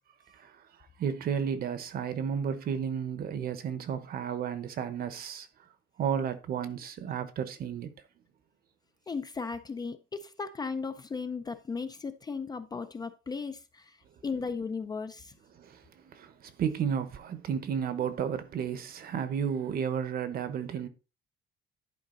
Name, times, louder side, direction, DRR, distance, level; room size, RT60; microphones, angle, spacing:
voice 1, 1.0-5.5 6.0-7.9 15.5-20.9, right 7 dB, 45° right, 1.1 m, -32 dB
voice 2, 9.1-14.0 14.2-15.3, left 5 dB, 20° left, 0.5 m, -36 dB
11.0 x 5.0 x 3.9 m
cardioid pair, 170°, 20 cm